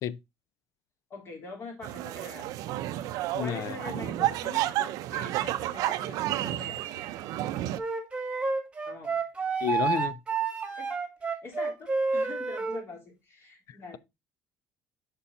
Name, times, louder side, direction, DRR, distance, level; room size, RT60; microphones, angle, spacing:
voice 1, 1.1-7.0 8.8-9.3 10.8-10.9 11.2-14.0, left 3 dB, 40° left, 3.5 m, -44 dB
sound 1, 1.8-7.8, right 14 dB, 75° right, 0.6 m, -31 dB
voice 2, 3.3-3.8 9.6-10.2 13.7-14.0, left 10 dB, 60° left, 0.5 m, -31 dB
Wind instrument woodwind instrument, 7.8-12.8, right 4 dB, 15° right, 1.6 m, -29 dB
7.0 x 5.4 x 4.0 m
cardioid pair, 125°, 6 cm